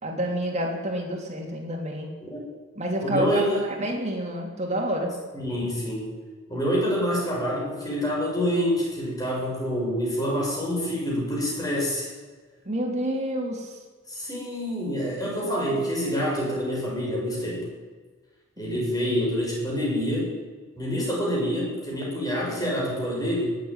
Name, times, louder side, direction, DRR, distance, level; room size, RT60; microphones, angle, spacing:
voice 1, 0.0-2.1 2.8-5.1 12.7-13.8 15.4-15.8 18.6-18.8, right 1 dB, 35° right, 1 dB, 3.4 m, -29 dB
voice 2, 3.0-3.7 5.3-6.1 6.5-12.1 14.1-17.7 18.6-20.3 20.8-23.6, equal, 20° left, -3 dB, 6.3 m, -27 dB
19.0 x 8.2 x 9.1 m, 1.4 s
head